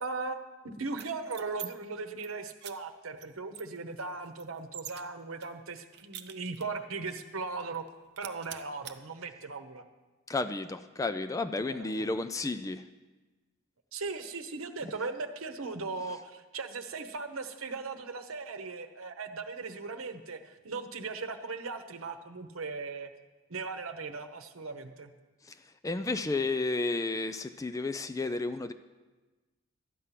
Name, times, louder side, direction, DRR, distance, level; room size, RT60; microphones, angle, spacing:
voice 1, 0.0-0.4 0.6-7.8 8.2-9.8 11.7-12.1 13.9-23.1 23.5-25.1, right 4 dB, 85° right, 8 dB, 1.0 m, -38 dB
sound 1, 0.9-1.7 2.0-2.3 2.6-2.7 3.2-3.3 3.5-5.0 5.4-6.8 7.2-7.3 7.6-7.9 8.2-9.0, right 11 dB, 55° right, 0.6 m, -45 dB
voice 2, 10.3-12.9 25.4-28.7, left 3 dB, 15° left, 10 dB, 0.3 m, -32 dB
12.5 x 9.5 x 5.9 m, 1.2 s
head